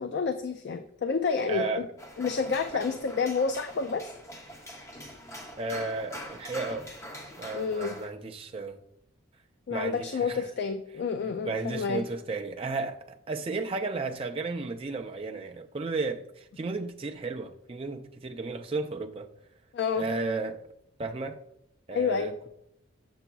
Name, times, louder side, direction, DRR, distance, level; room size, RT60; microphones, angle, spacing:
voice 1, 0.0-1.9 2.2-4.1 7.5-8.0 9.7-12.0 19.7-20.0 21.9-22.4, left 5 dB, 55° left, 0.3 m, -29 dB
voice 2, 1.5-1.9 5.6-6.9 7.4-8.8 9.7-10.5 11.2-19.3 19.9-20.6 21.0-21.4 21.9-22.3, right 3 dB, 25° right, 0.4 m, -33 dB
sound 1, 2.0-8.1, equal, 15° left, 0.7 m, -43 dB
7.0 x 6.8 x 2.3 m
head